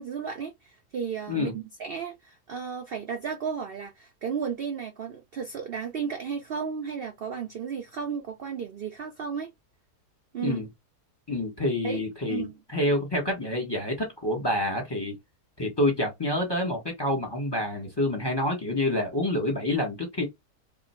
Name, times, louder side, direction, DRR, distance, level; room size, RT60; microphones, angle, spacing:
voice 1, 0.0-9.5 10.3-10.6 11.8-12.0 12.3-12.6, right 6 dB, 65° right, 0.5 m, -34 dB
voice 2, 11.3-15.1 15.6-20.2, left 1 dB, 15° left, 1.1 m, -27 dB
3.0 x 2.7 x 4.3 m
omnidirectional pair, 1.7 m